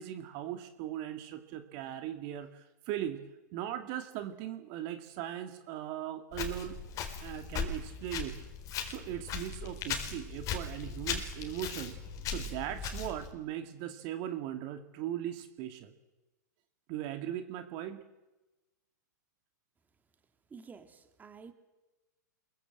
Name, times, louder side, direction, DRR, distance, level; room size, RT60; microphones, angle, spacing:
voice 1, 0.0-3.2 3.5-6.8 7.2-8.4 8.9-12.0 12.3-15.9 16.9-18.0, right 11 dB, 45° right, 8 dB, 2.2 m, -39 dB
Walk footsteps, 6.3-13.3, left 6 dB, 35° left, 4.3 m, -38 dB
voice 2, 20.5-21.5, right 5 dB, 15° right, 8 dB, 2.5 m, -50 dB
27.0 x 22.5 x 7.7 m, 1.1 s
hypercardioid pair, 110°, 10 cm